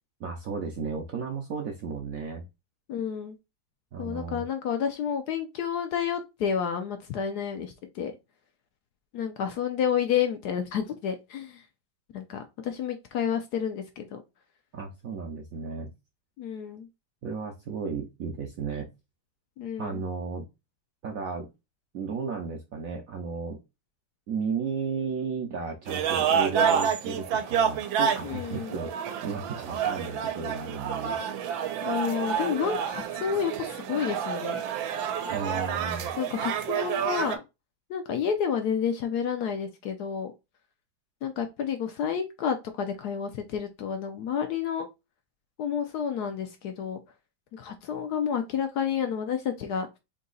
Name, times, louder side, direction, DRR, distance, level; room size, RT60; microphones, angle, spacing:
voice 1, 0.2-2.5 3.9-4.4 14.7-15.9 17.2-18.9 19.8-20.5 21.0-21.5 21.9-23.6 24.3-31.2 35.3-36.1, right 5 dB, 65° right, 0.8 m, -34 dB
voice 2, 2.9-3.4 4.0-8.1 9.1-11.6 12.1-14.2 16.4-16.9 19.6-20.0 28.2-28.7 31.8-34.6 36.2-37.4 37.9-40.3 41.2-44.9 45.6-47.0 47.5-49.9, left 8 dB, 70° left, 1.0 m, -30 dB
sound 1, 25.9-37.4, right 8 dB, 90° right, 1.4 m, -29 dB
4.0 x 2.7 x 3.9 m
omnidirectional pair, 2.1 m